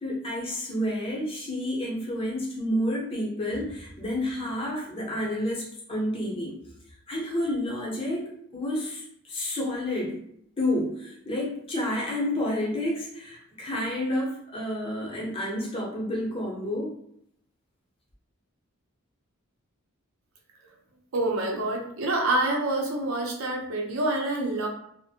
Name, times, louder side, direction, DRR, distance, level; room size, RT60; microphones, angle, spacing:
voice 1, 0.0-6.6 7.1-10.2 10.6-16.9, left 1 dB, 25° left, -4 dB, 0.7 m, -30 dB
voice 2, 21.1-24.7, right 2 dB, 80° right, -1 dB, 0.6 m, -27 dB
2.5 x 2.1 x 2.7 m, 0.71 s
head